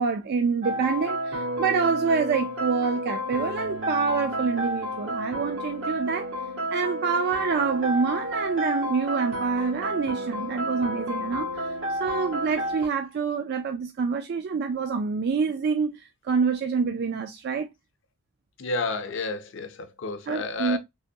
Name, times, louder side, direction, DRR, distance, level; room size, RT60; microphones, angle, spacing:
voice 1, 0.0-6.3 6.7-17.7 20.3-20.8, right 5 dB, 55° right, 0.3 m, -27 dB
sound 1, 0.6-12.9, equal, 80° right, 1.2 m, -31 dB
voice 2, 18.6-20.8, left 3 dB, 65° left, 0.6 m, -31 dB
3.4 x 2.9 x 2.7 m
head